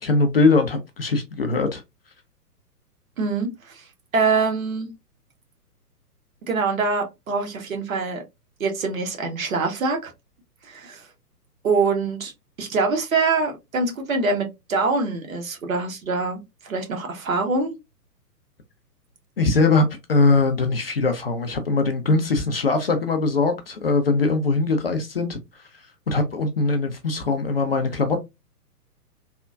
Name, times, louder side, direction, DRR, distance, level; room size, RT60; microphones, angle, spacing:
voice 1, 0.0-1.8 19.4-25.4 26.1-28.2, left 3 dB, 40° left, 0.4 m, -21 dB
voice 2, 3.2-3.8 4.1-4.9 6.4-8.2 8.6-10.1 10.6-11.1 11.6-12.3 12.6-17.7, right 4 dB, 55° right, 1.0 m, -24 dB
3.3 x 2.1 x 2.4 m
figure-of-eight pair, 120°, 48 cm